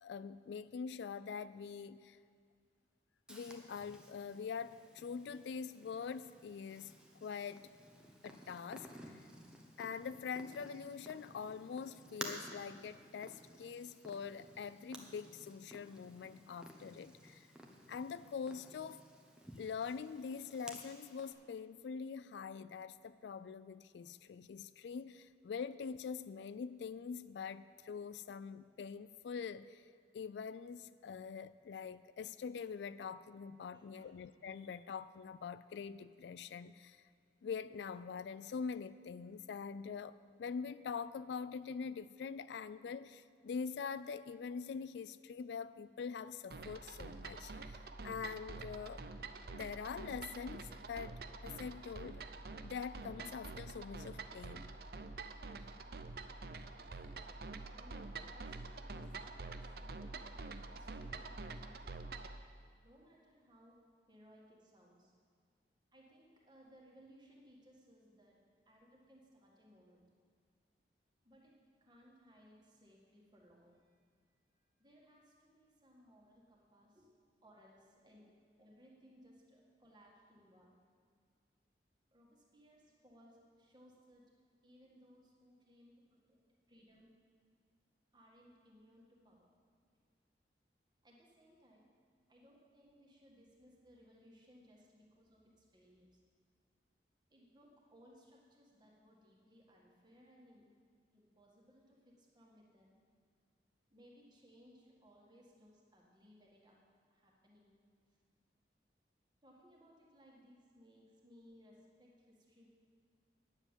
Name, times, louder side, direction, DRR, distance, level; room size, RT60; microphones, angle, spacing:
voice 1, 0.0-2.2 3.3-6.9 7.2-7.7 8.2-9.3 9.8-17.5 17.9-19.0 19.6-29.8 30.1-37.0 37.4-49.0 49.5-52.3 52.6-54.7, left 6 dB, 75° left, 15 dB, 0.3 m, -44 dB
Purr, 3.3-21.3, equal, 5° right, 0.9 m, -54 dB
voice 2, 33.7-34.1 56.8-60.4 60.7-62.0 62.8-63.8 64.1-65.1 65.9-68.4 68.7-70.0 71.2-71.5 71.8-74.0 74.6-77.1 77.4-78.3 78.6-80.7 82.1-84.2 84.6-85.9 86.3-86.4 86.7-87.1 88.1-89.5 91.0-91.9 92.3-96.2 97.3-100.7 101.1-103.0 103.9-106.8 107.1-107.7 108.1-108.2 109.4-112.7, equal, 25° right, -2 dB, 1.8 m, -64 dB
sound 1, 46.5-62.4, right 3 dB, 55° right, 0.6 m, -47 dB
9.8 x 7.1 x 8.9 m, 2.1 s
head